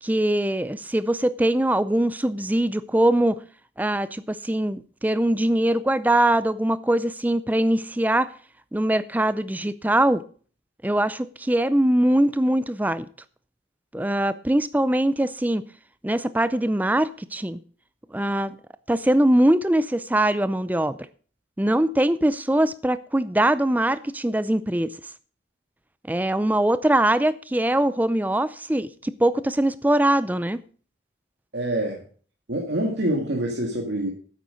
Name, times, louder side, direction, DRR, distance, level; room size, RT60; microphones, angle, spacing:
voice 1, 0.0-3.4 3.8-8.3 8.7-10.2 10.8-13.1 13.9-15.6 16.0-17.6 18.1-18.6 18.9-21.0 21.6-24.9 26.1-30.6, right 1 dB, 10° right, 0.4 m, -22 dB
voice 2, 31.5-32.0 32.5-34.1, right 1 dB, 75° right, 2.0 m, -26 dB
9.2 x 8.4 x 6.4 m
head